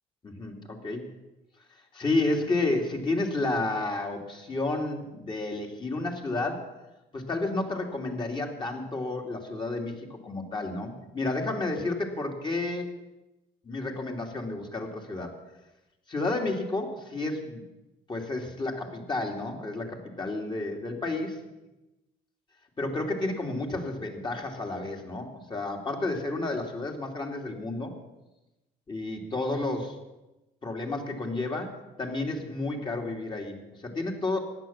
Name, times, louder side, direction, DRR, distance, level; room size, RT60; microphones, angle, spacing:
voice 1, 0.2-1.0 1.7-6.7 7.1-12.9 13.6-15.3 16.1-17.6 18.1-21.4 22.8-27.9 28.9-30.0 30.6-34.4, left 2 dB, 25° left, 2 dB, 2.9 m, -31 dB
15.0 x 11.0 x 7.2 m, 1.0 s
cardioid pair, 110°, 17 cm